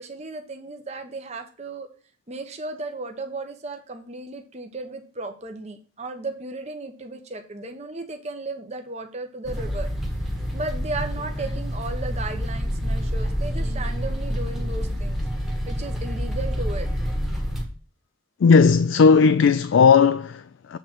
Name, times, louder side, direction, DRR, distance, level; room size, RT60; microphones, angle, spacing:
voice 1, 0.0-1.9 2.3-9.9 10.5-15.2 15.7-16.9, right 2 dB, 30° right, 1.0 m, -35 dB
sound 1, 9.4-17.6, equal, ahead, 1.2 m, -27 dB
voice 2, 18.4-20.8, left 5 dB, 65° left, 0.3 m, -16 dB
7.7 x 3.8 x 5.9 m
head